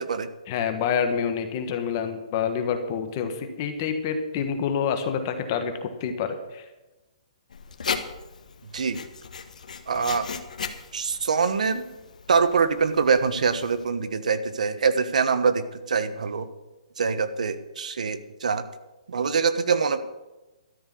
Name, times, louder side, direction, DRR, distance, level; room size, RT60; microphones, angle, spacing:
voice 1, 0.5-6.6, left 7 dB, 25° left, 7 dB, 1.3 m, -27 dB
Writing, 7.5-13.8, left 6 dB, 75° left, 1.5 m, -37 dB
voice 2, 9.9-10.3 10.9-11.8 12.3-16.5 17.0-18.6 19.1-20.0, right 5 dB, 70° right, 11 dB, 1.2 m, -24 dB
13.0 x 6.6 x 9.4 m, 1.1 s
hypercardioid pair, 175°, 4 cm